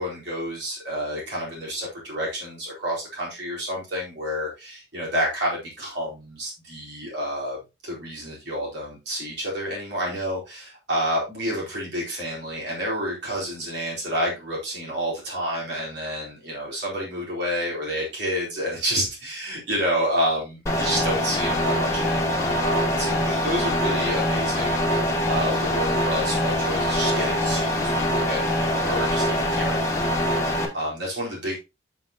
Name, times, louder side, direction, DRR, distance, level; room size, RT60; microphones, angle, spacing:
voice 1, 0.0-7.6 7.8-31.6, equal, 65° right, -5 dB, 4.3 m, -29 dB
sound 1, 20.7-30.7, left 1 dB, 15° left, 1.8 m, -24 dB
8.0 x 7.2 x 3.0 m, 0.26 s
head